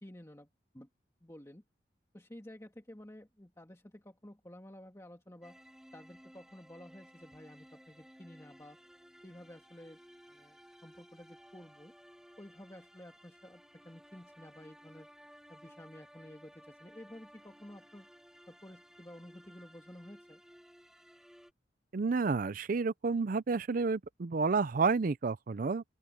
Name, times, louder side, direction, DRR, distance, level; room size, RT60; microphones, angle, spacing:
voice 1, 0.0-0.5 0.7-0.9 1.2-1.6 2.1-5.6 5.9-8.8 9.2-10.0 10.3-11.9 12.4-15.1 15.5-18.1 18.5-20.4, left 1 dB, 15° left, 2.0 m, -52 dB
sound 1, 5.4-21.5, equal, 5° right, 3.0 m, -58 dB
voice 2, 21.9-25.8, right 4 dB, 45° right, 0.5 m, -30 dB
open air
head